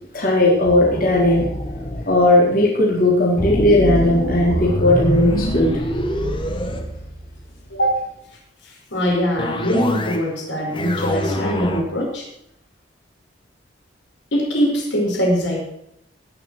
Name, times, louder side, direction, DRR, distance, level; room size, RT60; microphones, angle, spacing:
voice 1, 0.1-1.5 2.1-5.7, left 1 dB, 50° left, -4 dB, 4.4 m, -16 dB
sound 1, 0.6-2.1 3.4-7.6 9.4-10.3 10.6-11.8, equal, 25° left, 1.6 m, -25 dB
voice 2, 7.7-8.0 8.9-12.2 14.3-15.6, equal, 80° left, -1 dB, 5.2 m, -22 dB
19.0 x 7.2 x 6.4 m, 0.77 s
head